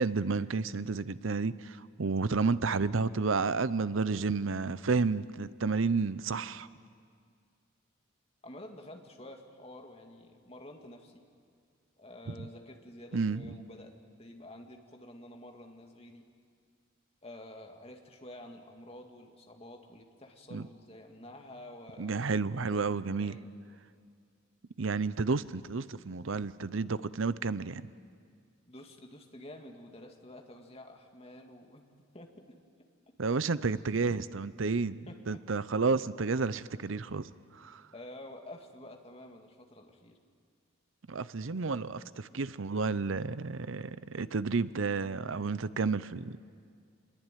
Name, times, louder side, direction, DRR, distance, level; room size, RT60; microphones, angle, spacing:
voice 1, 0.0-6.7 12.3-12.5 13.1-13.5 20.5-20.7 22.0-23.4 24.8-27.9 33.2-37.8 41.1-46.5, right 4 dB, 70° right, 16 dB, 0.7 m, -31 dB
voice 2, 8.4-11.3 12.0-16.3 17.2-22.2 22.5-23.5 28.7-31.9 32.1-32.6 33.1-33.2 35.1-35.4 37.9-40.2, left 1 dB, 30° left, 3 dB, 2.1 m, -49 dB
25.5 x 21.5 x 9.2 m, 2.2 s
head